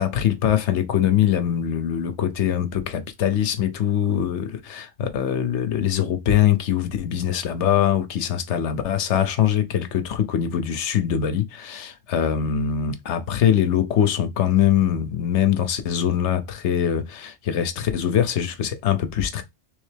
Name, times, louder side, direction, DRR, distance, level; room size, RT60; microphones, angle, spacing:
voice 1, 0.0-19.4, left 10 dB, 75° left, 1.0 m, -22 dB
3.4 x 3.2 x 3.3 m
omnidirectional pair, 1.2 m